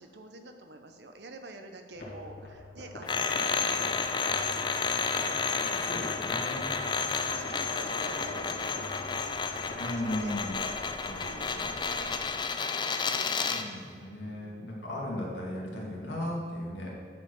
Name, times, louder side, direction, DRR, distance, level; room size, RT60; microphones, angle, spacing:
voice 1, 0.0-5.5 6.8-10.4 10.9-12.2 13.1-15.1, right 2 dB, 75° right, 6 dB, 0.9 m, -49 dB
sound 1, 1.9-10.9, left 2 dB, 60° left, 2.3 m, -44 dB
sound 2, 3.1-13.7, left 5 dB, 25° left, 0.4 m, -31 dB
sound 3, 5.6-12.3, right 1 dB, 90° right, 1.8 m, -54 dB
voice 2, 5.8-6.7 9.8-10.6 11.0-11.2 11.5-11.7 13.5-16.9, left 1 dB, 85° left, -3 dB, 2.4 m, -36 dB
10.0 x 5.0 x 6.1 m, 2.1 s
head